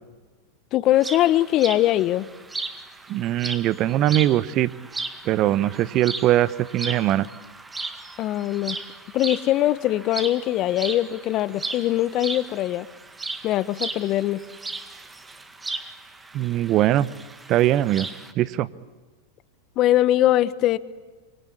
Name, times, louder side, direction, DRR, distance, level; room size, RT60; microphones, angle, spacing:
voice 1, 0.7-2.3 8.2-8.8 9.1-12.9 13.4-14.4 19.8-20.8, left 14 dB, 45° left, 17 dB, 1.2 m, -21 dB
sound 1, 0.9-18.3, right 3 dB, 15° right, 2.1 m, -36 dB
voice 2, 3.1-4.7 5.2-7.3 16.3-17.1 17.5-18.1 18.4-18.7, right 13 dB, 45° right, 19 dB, 1.0 m, -21 dB
25.5 x 24.5 x 8.7 m, 1.4 s
hypercardioid pair, 95°, 0 cm